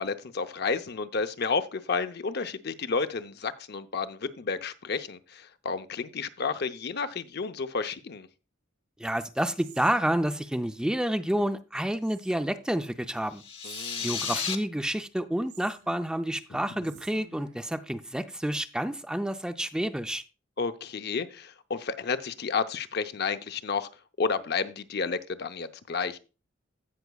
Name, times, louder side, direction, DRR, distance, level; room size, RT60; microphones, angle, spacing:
voice 1, 0.0-8.3 13.6-14.2 16.5-16.9 20.6-23.9 24.2-26.2, left 4 dB, 55° left, 0.7 m, -31 dB
voice 2, 9.0-13.4 14.0-20.2, right 1 dB, 5° right, 0.4 m, -29 dB
Whispering, 9.6-10.7 12.0-12.7 13.6-14.8 15.5-16.4 16.8-17.7, right 5 dB, 75° right, 2.2 m, -52 dB
sound 1, 13.3-14.6, left 6 dB, 30° left, 0.9 m, -33 dB
16.0 x 5.9 x 2.3 m
head